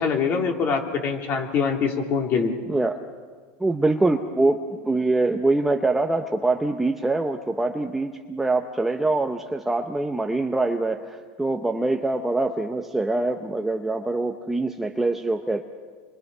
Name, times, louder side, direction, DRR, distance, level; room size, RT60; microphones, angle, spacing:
voice 1, 0.0-2.5, left 5 dB, 35° left, 2 dB, 3.1 m, -24 dB
voice 2, 3.6-15.6, right 2 dB, 5° right, 4 dB, 0.7 m, -24 dB
28.5 x 23.0 x 5.6 m, 1.6 s
supercardioid pair, 155°, 6 cm